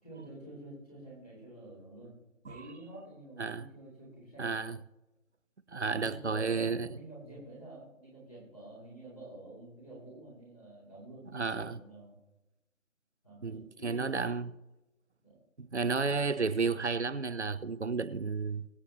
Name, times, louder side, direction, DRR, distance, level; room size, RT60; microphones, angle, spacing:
voice 1, 0.0-2.2 2.5-4.5 5.8-12.1 13.2-14.1 15.2-15.4, right 2 dB, ahead, 1.6 m, -49 dB
voice 2, 4.4-4.8 5.7-7.0 11.3-11.8 13.4-14.5 15.6-18.7, right 4 dB, 55° right, 0.7 m, -32 dB
23.0 x 7.7 x 3.1 m
figure-of-eight pair, 170°, 41 cm